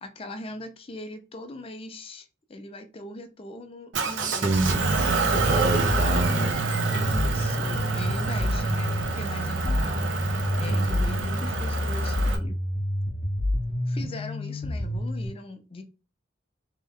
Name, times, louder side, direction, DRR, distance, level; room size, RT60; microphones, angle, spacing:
voice 1, 0.0-4.8 6.9-12.6 13.9-15.8, left 2 dB, 30° left, 0.5 m, -40 dB
Motor vehicle (road) / Engine, 3.9-12.4, right 3 dB, 80° right, 0.7 m, -28 dB
voice 2, 4.2-6.6 10.7-11.1, right 3 dB, 40° right, 0.7 m, -28 dB
sound 1, 5.3-15.3, equal, 55° left, 1.0 m, -28 dB
3.3 x 3.1 x 3.6 m
head